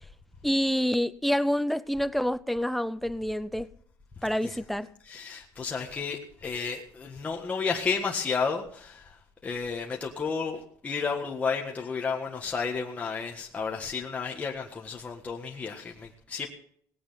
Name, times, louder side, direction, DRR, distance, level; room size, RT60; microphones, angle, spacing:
voice 1, 0.4-3.7 4.2-4.9, equal, ahead, 0.5 m, -27 dB
voice 2, 5.1-16.5, left 5 dB, 20° left, 1.6 m, -32 dB
19.0 x 8.7 x 5.7 m
cardioid pair, 135°, 6 cm